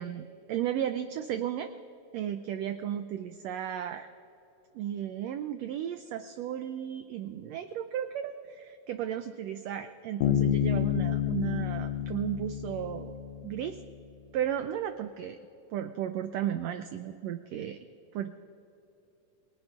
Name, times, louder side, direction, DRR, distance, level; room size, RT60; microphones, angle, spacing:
voice 1, 0.0-1.7 2.1-4.1 4.7-13.1 13.4-13.8 14.3-15.4 15.7-17.8 18.1-18.3, right 10 dB, 90° right, 9 dB, 1.4 m, -34 dB
Bass guitar, 10.2-13.8, left 11 dB, 85° left, 2.1 m, -29 dB
29.0 x 18.5 x 2.4 m, 2.9 s
omnidirectional pair, 3.6 m